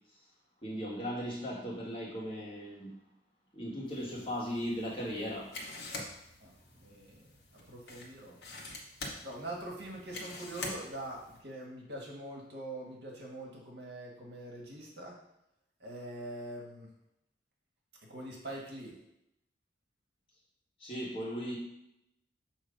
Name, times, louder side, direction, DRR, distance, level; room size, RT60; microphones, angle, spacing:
voice 1, 0.6-2.9 3.5-5.5 20.8-21.6, equal, 30° left, -5 dB, 1.5 m, -37 dB
sound 1, 3.9-11.4, left 2 dB, 65° left, 1.1 m, -46 dB
voice 2, 6.8-7.3 7.5-8.4 9.0-15.2 15.8-16.9 18.0-19.0, right 1 dB, 65° right, -2 dB, 1.4 m, -44 dB
6.3 x 3.0 x 5.1 m, 0.82 s
head